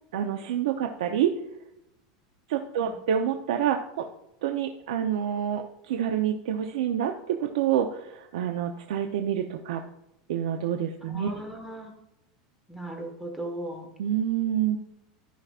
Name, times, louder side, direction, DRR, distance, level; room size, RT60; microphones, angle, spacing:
voice 1, 0.1-1.3 2.5-4.1 4.4-9.8 10.3-11.3 14.0-14.8, right 9 dB, 85° right, 5 dB, 0.7 m, -27 dB
voice 2, 11.0-11.9 12.7-13.9, right 1 dB, 5° right, 1 dB, 1.5 m, -37 dB
13.5 x 5.7 x 2.5 m, 0.87 s
supercardioid pair, 155°, 3 cm